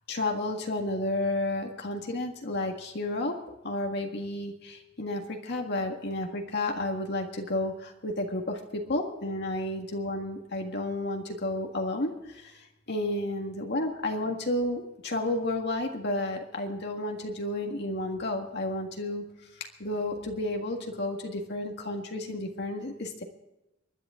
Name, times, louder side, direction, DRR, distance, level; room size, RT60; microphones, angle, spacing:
voice 1, 0.1-3.4 3.6-23.2, left 1 dB, 55° left, 2 dB, 1.7 m, -32 dB
24.0 x 11.0 x 3.7 m, 0.93 s
head